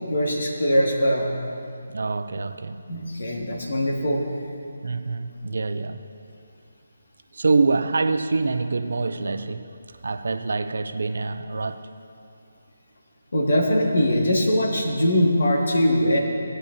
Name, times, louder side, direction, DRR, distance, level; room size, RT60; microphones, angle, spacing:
voice 1, 0.1-1.4 2.9-4.2 13.3-16.2, equal, 65° left, 0 dB, 2.0 m, -21 dB
voice 2, 1.9-2.8 4.8-6.0 7.3-9.6 10.0-11.8, right 3 dB, 65° right, 10 dB, 0.5 m, -25 dB
17.5 x 9.2 x 2.7 m, 2.5 s
figure-of-eight pair, 155°, 0 cm